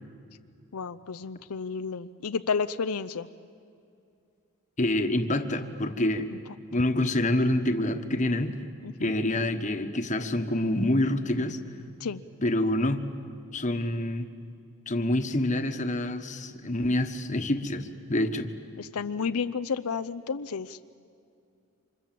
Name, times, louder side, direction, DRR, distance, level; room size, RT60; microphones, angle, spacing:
voice 1, 0.7-3.3 6.3-6.4 8.8-9.1 12.0-12.2 18.8-20.8, left 5 dB, 85° left, 11 dB, 0.6 m, -31 dB
voice 2, 4.8-6.3 6.7-8.6 9.0-11.6 12.4-13.0 13.5-14.3 14.9-18.5, left 1 dB, 35° left, 8 dB, 1.3 m, -27 dB
29.0 x 26.0 x 7.6 m, 2.5 s
head